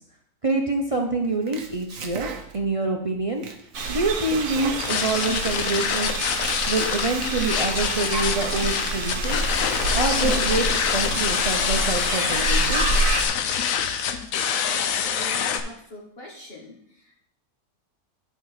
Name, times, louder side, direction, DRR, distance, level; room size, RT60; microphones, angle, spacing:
voice 1, 0.4-3.4 3.9-6.1 6.7-9.4 9.9-10.7 10.9-12.8, right 2 dB, 45° right, 2 dB, 0.4 m, -26 dB
Domestic sounds home sounds, 1.2-2.8 3.1-5.7 6.0-8.0 8.6-8.7 9.1-11.0, right 6 dB, 65° right, 1.2 m, -39 dB
sound 1, 3.7-13.3, right 3 dB, 85° right, 1.4 m, -28 dB
sound 2, 4.8-15.6, left 8 dB, 70° left, 1.0 m, -25 dB
voice 2, 14.7-17.2, left 1 dB, 40° left, -2 dB, 1.4 m, -42 dB
9.9 x 4.2 x 4.9 m, 0.68 s
omnidirectional pair, 1.6 m